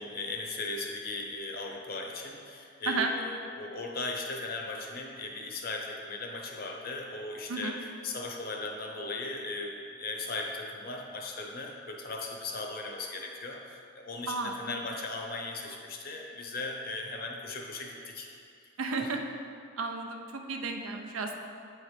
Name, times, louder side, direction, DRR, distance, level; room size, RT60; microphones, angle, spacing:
voice 1, 0.0-18.3 19.0-19.1, left 3 dB, 45° left, 1 dB, 0.7 m, -38 dB
voice 2, 18.8-19.2 19.8-21.3, right 4 dB, 85° right, 3 dB, 0.6 m, -32 dB
8.1 x 3.2 x 4.9 m, 2.4 s
head